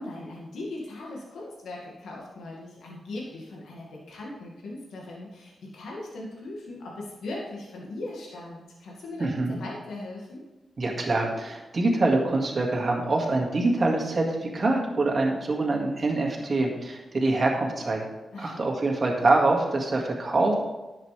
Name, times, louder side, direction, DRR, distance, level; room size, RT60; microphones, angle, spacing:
voice 1, 0.0-9.3 9.6-10.4 18.3-18.6, left 2 dB, 90° left, -3 dB, 2.0 m, -39 dB
voice 2, 9.2-9.6 10.8-18.0 18.4-20.5, right 2 dB, 45° right, 0 dB, 1.9 m, -25 dB
10.5 x 7.4 x 3.4 m, 1.1 s
cardioid pair, 80°, 0 cm